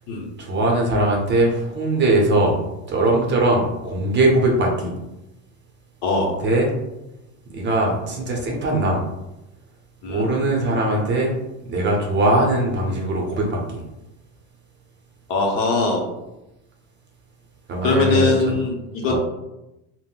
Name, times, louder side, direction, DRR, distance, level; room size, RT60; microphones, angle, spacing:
voice 1, 0.4-2.6 2.9-4.9 6.4-6.7 7.5-9.0 10.1-11.4 11.7-13.8 17.7-18.6 19.1-19.2, right 1 dB, 30° right, 0 dB, 0.6 m, -20 dB
voice 2, 6.0-6.3 10.0-10.2 15.3-16.1 17.8-19.2, left 3 dB, 65° left, 0 dB, 0.8 m, -21 dB
3.5 x 2.1 x 2.3 m, 0.93 s
supercardioid pair, 130°, 35 cm